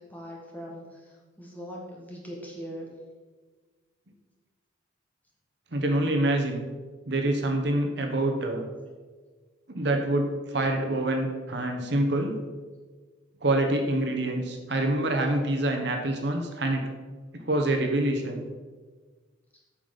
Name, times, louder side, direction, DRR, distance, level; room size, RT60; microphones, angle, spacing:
voice 1, 0.1-2.9, equal, 10° left, -3 dB, 1.6 m, -41 dB
voice 2, 5.7-6.7 7.1-8.7 9.7-12.4 13.4-16.8 17.3-18.4, right 1 dB, 60° right, 3 dB, 1.0 m, -26 dB
8.4 x 5.7 x 5.4 m, 1.4 s
head